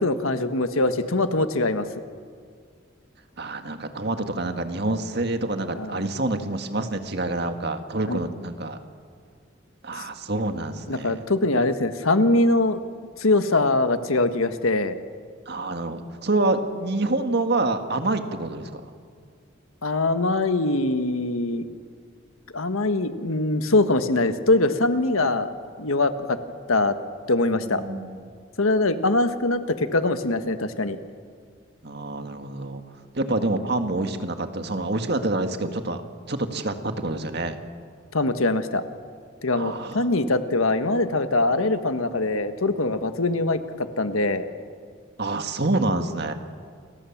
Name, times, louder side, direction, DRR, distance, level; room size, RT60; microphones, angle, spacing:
voice 1, 0.0-1.9 5.7-6.0 8.1-8.2 9.9-10.0 10.9-12.8 13.2-15.0 19.8-21.7 22.5-25.5 25.8-26.4 26.7-26.9 27.3-27.8 28.6-31.0 38.1-38.8 39.4-43.6 44.0-44.4, left 2 dB, 85° left, 9 dB, 1.5 m, -22 dB
voice 2, 3.4-8.8 9.8-11.2 15.5-18.8 27.5-28.2 31.8-32.8 33.1-36.0 36.3-37.6 39.6-40.1 45.2-46.3, right 2 dB, 50° right, 7 dB, 1.9 m, -27 dB
29.0 x 24.0 x 7.3 m, 2.1 s
head